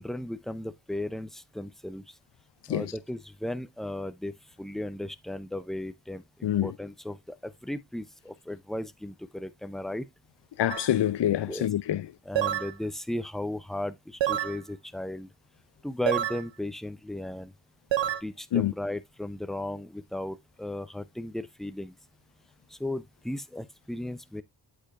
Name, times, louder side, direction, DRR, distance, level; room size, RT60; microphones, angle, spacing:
voice 1, 0.0-2.1 2.7-10.1 11.5-11.7 12.3-15.3 15.8-17.5 18.2-21.9 22.7-24.4, left 1 dB, ahead, 0.6 m, -36 dB
voice 2, 6.4-6.7 10.6-12.1 18.5-18.7, left 11 dB, 60° left, 0.6 m, -26 dB
sound 1, 10.7-10.9 12.4-12.7 14.2-14.6 16.1-16.4 17.9-18.2, right 12 dB, 65° right, 0.7 m, -27 dB
8.4 x 5.2 x 2.5 m
supercardioid pair, 40°, 49 cm